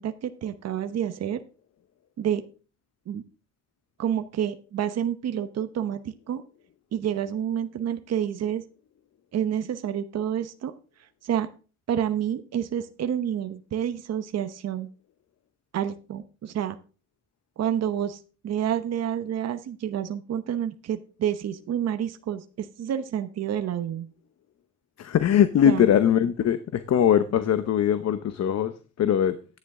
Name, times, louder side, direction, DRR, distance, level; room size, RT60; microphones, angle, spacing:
voice 1, 0.0-1.4 2.2-2.4 3.1-3.2 4.0-6.4 6.9-8.6 9.3-10.7 11.0-11.5 11.9-14.9 15.7-16.8 17.6-24.1 25.6-25.9, right 9 dB, 55° right, 0.9 m, -29 dB
voice 2, 25.0-29.4, left 9 dB, 60° left, 0.9 m, -21 dB
11.5 x 9.5 x 3.7 m
cardioid pair, 90°, 30 cm